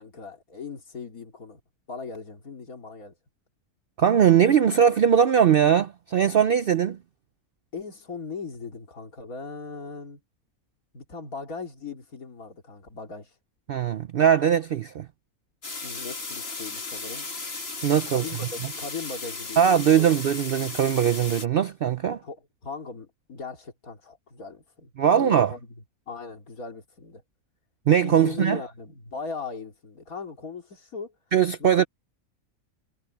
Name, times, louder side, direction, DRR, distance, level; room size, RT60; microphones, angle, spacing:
voice 1, 0.0-1.6 1.9-3.1 7.7-10.2 10.9-13.3 15.8-17.3 18.1-20.1 22.2-25.6 26.1-27.2 27.9-31.1 31.6-31.7, left 4 dB, 70° left, 3.2 m, -38 dB
voice 2, 4.0-7.0 13.7-15.1 17.8-18.2 19.6-22.2 25.0-25.5 27.9-28.6 31.3-31.8, right 8 dB, 65° right, 0.5 m, -20 dB
sound 1, 15.6-21.5, left 3 dB, 45° left, 2.1 m, -36 dB
omnidirectional pair, 1.5 m